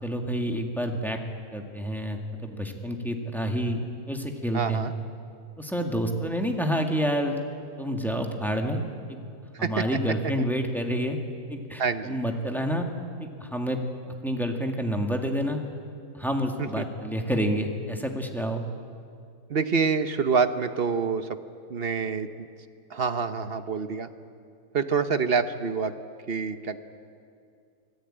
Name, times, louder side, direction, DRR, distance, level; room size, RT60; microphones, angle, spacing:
voice 1, 0.0-1.2 1.5-4.9 5.6-7.4 7.8-8.8 9.1-9.2 9.6-11.2 11.5-12.9 13.2-15.6 16.1-18.7, equal, ahead, 2 dB, 1.9 m, -28 dB
voice 2, 4.5-4.9 9.5-9.8 11.8-12.2 16.6-16.8 19.5-21.4 21.7-22.5 22.9-24.1 24.7-25.9 26.3-26.8, right 5 dB, 45° right, 10 dB, 0.9 m, -26 dB
25.5 x 17.0 x 8.9 m, 2.4 s
omnidirectional pair, 1.6 m